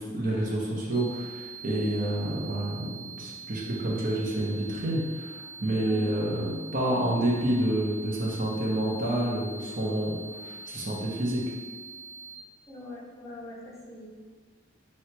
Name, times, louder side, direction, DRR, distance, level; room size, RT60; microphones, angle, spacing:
voice 1, 0.0-11.4, right 1 dB, 45° right, -3 dB, 0.8 m, -29 dB
sound 1, 0.9-12.3, right 3 dB, 5° right, 1.0 m, -44 dB
voice 2, 5.7-6.2 12.7-14.1, left 2 dB, 15° left, -4 dB, 0.6 m, -43 dB
3.1 x 2.9 x 4.4 m, 1.5 s
head